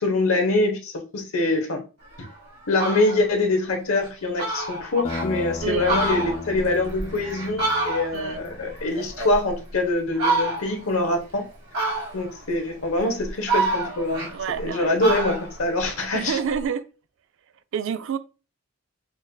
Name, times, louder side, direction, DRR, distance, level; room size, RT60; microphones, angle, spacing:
voice 1, 0.0-1.8 2.7-11.4 12.1-14.3 14.6-16.4, left 2 dB, 75° left, 0.9 m, -24 dB
Fowl, 2.1-2.3 2.6-3.2 3.7-3.8 4.1-4.2 4.4-5.3 5.7-8.3 8.7-9.7 10.2-10.8 11.7-12.4 13.0-14.7 15.0-16.6, right 2 dB, 85° right, 1.7 m, -27 dB
sound 1, 5.0-9.3, left 3 dB, 25° left, 0.3 m, -37 dB
voice 2, 5.6-5.9 8.1-8.4 14.3-14.9 16.1-16.9 17.7-18.2, right 7 dB, 60° right, 0.3 m, -28 dB
6.1 x 2.5 x 2.2 m
head